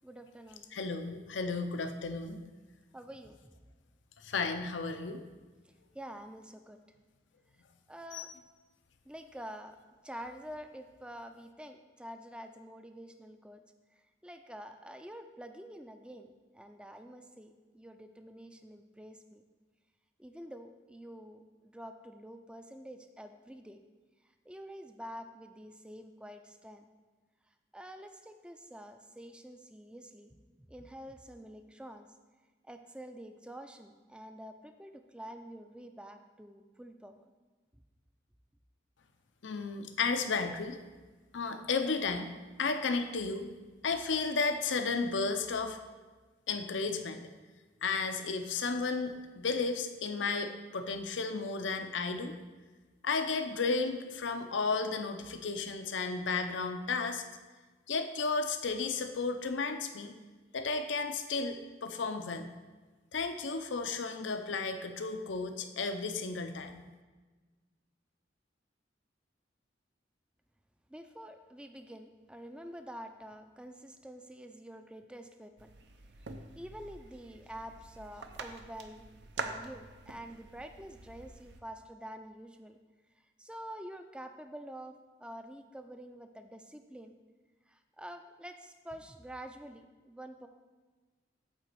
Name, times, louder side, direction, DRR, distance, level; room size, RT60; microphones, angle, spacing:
voice 1, 0.0-0.7 2.9-3.5 5.9-6.8 7.9-8.3 9.1-9.8 10.0-13.6 13.9-19.4 20.2-23.8 24.5-26.8 27.7-32.1 32.6-37.2 70.9-75.7 76.6-79.0 79.4-82.8 83.4-87.1 87.7-90.5, equal, 5° right, 7 dB, 0.4 m, -47 dB
voice 2, 0.7-2.4 4.2-5.2 8.1-8.3 39.4-40.8 41.3-42.3 42.6-43.5 43.8-45.8 46.5-47.2 47.8-52.3 53.0-57.2 57.9-60.1 60.5-61.6 61.8-62.5 63.1-66.8, left 4 dB, 80° left, 7 dB, 0.7 m, -33 dB
sound 1, 75.6-81.6, right 3 dB, 65° right, 0.6 m, -45 dB
9.1 x 4.0 x 6.7 m, 1.3 s
head